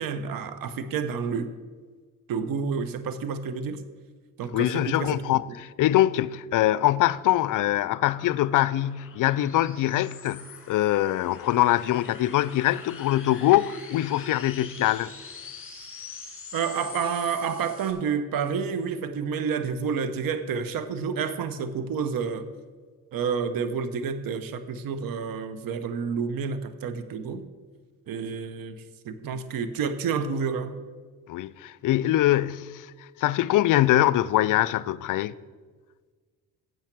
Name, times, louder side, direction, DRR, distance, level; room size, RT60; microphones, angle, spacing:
voice 1, 0.0-1.5 2.3-3.8 4.4-5.2 16.5-22.5 23.1-27.4 28.1-30.8, right 6 dB, 65° right, 1.0 m, -29 dB
voice 2, 4.5-15.1 31.3-32.9 33.2-35.4, left 14 dB, 60° left, 0.5 m, -23 dB
sound 1, 6.4-17.9, left 5 dB, 35° left, 1.8 m, -45 dB
9.0 x 7.2 x 6.0 m
supercardioid pair, 75°, 37 cm